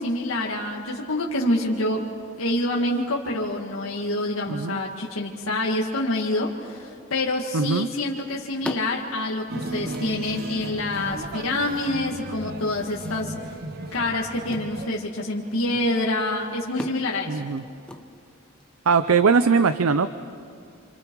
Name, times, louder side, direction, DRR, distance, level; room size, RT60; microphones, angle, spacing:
voice 1, 0.0-2.0 2.4-13.3 13.9-17.4, left 1 dB, 75° left, -3 dB, 2.0 m, -26 dB
voice 2, 4.5-4.8 7.5-7.9 17.3-17.6 18.9-20.1, right 5 dB, 85° right, 12 dB, 0.6 m, -20 dB
sound 1, 7.9-18.7, equal, 5° left, 0.9 m, -43 dB
sound 2, 9.5-14.9, right 1 dB, 50° right, 0.8 m, -35 dB
29.0 x 26.5 x 4.7 m, 2.6 s
head